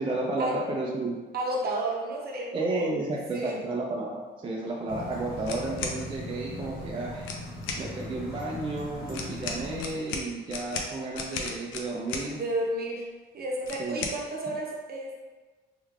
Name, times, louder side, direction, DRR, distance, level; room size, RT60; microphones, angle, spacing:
voice 1, 0.0-1.2 2.5-7.3 7.8-12.4 13.8-14.0, right 2 dB, 25° right, -3 dB, 0.5 m, -32 dB
voice 2, 1.3-2.9 3.3-3.6 12.3-13.1 13.3-15.2, right 1 dB, 50° right, -1 dB, 0.8 m, -32 dB
sound 1, 4.9-9.9, left 1 dB, 50° left, 0.9 m, -39 dB
sound 2, 5.4-6.0 7.2-7.8 9.1-12.3 13.6-14.2, left 4 dB, 90° left, 0.5 m, -35 dB
3.3 x 3.1 x 2.4 m, 1.3 s
cardioid pair, 90°, 20 cm